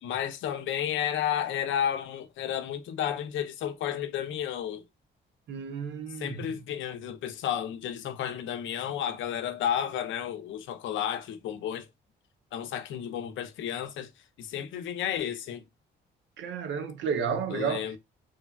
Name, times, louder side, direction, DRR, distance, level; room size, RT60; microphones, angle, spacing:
voice 1, 0.0-4.8 6.2-11.9 12.5-14.1 14.4-15.6 17.5-18.0, left 9 dB, 75° left, 0.5 m, -32 dB
voice 2, 5.5-6.6 16.4-17.9, right 6 dB, 75° right, 0.6 m, -32 dB
3.2 x 2.2 x 2.2 m
cardioid pair, 90°, 20 cm